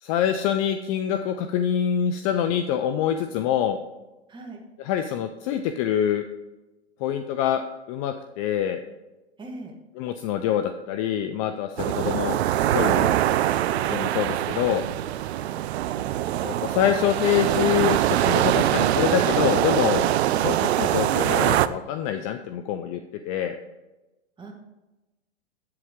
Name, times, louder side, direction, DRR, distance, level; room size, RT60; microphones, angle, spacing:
voice 1, 0.0-3.8 4.8-6.2 7.0-7.6 7.9-8.8 10.0-12.4 12.7-13.1 13.9-14.8 16.4-20.1 20.4-23.6, left 9 dB, 30° left, 8 dB, 0.4 m, -25 dB
voice 2, 9.4-9.7 24.4-24.5, right 2 dB, 15° right, 3 dB, 1.3 m, -39 dB
sound 1, 11.8-21.7, right 12 dB, 70° right, 0.5 m, -23 dB
7.8 x 7.6 x 3.6 m, 1.1 s
hypercardioid pair, 120°, 34 cm